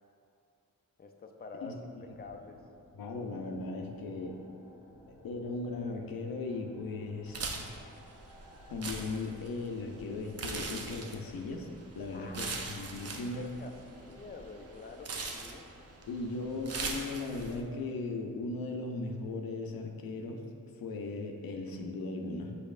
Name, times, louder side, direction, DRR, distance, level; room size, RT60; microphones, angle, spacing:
voice 1, 1.0-2.6 12.1-12.7 13.0-15.7, left 4 dB, 30° left, 4 dB, 0.4 m, -48 dB
sound 1, 2.0-17.4, left 1 dB, 5° left, 1.4 m, -58 dB
voice 2, 3.0-4.4 5.1-7.7 8.7-11.7 12.0-13.5 16.1-20.4 20.8-22.6, left 3 dB, 80° left, 3 dB, 0.5 m, -37 dB
sound 2, 7.3-17.6, right 3 dB, 45° right, 0.5 m, -41 dB
5.3 x 4.1 x 2.4 m, 2.4 s
cardioid pair, 70°, 35 cm